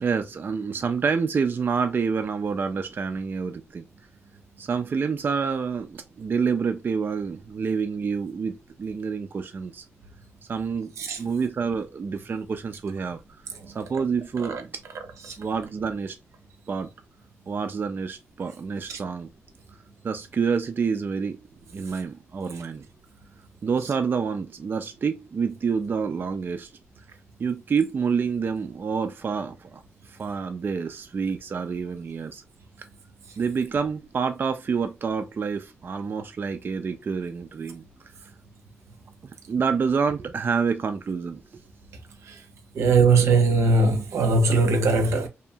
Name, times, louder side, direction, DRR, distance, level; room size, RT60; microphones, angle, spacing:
voice 1, 0.0-3.8 4.6-9.8 10.5-10.9 11.2-13.2 13.7-14.7 15.4-16.2 16.7-16.9 17.5-19.3 20.0-21.5 21.7-22.9 23.6-26.7 27.4-32.4 32.8-32.9 33.4-37.8 38.2-38.3 39.5-41.4, right 5 dB, 45° right, 0.3 m, -28 dB
voice 2, 42.8-45.3, right 3 dB, 90° right, 0.6 m, -20 dB
2.7 x 2.2 x 2.7 m
cardioid pair, 95°, 5 cm